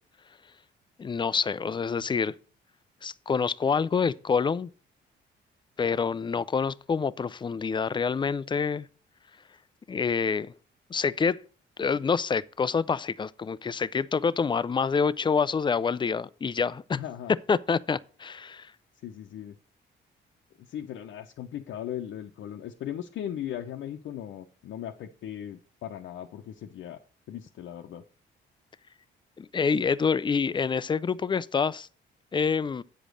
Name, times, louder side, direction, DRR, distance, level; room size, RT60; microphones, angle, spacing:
voice 1, 1.0-2.4 3.0-4.7 5.8-8.9 9.9-10.5 10.9-11.4 11.8-17.0 17.3-18.7 29.4-31.9 32.3-32.8, left 5 dB, 25° left, 0.4 m, -27 dB
voice 2, 16.9-17.3 19.0-19.5 20.6-27.0 27.3-28.0, left 10 dB, 75° left, 0.8 m, -38 dB
8.7 x 5.1 x 6.4 m
cardioid pair, 90°, 20 cm